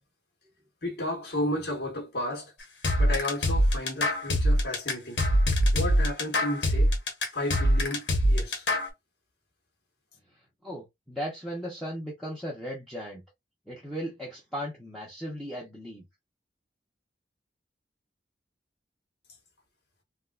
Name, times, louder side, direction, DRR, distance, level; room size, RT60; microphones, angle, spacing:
voice 1, 0.8-2.5 3.0-5.2 5.7-6.9 7.3-8.7, left 1 dB, 60° left, 1.3 m, -33 dB
sound 1, 2.8-8.9, equal, 80° left, 1.1 m, -23 dB
voice 2, 10.3-13.2 13.7-16.1, equal, ahead, 0.9 m, -37 dB
3.5 x 2.3 x 2.5 m
head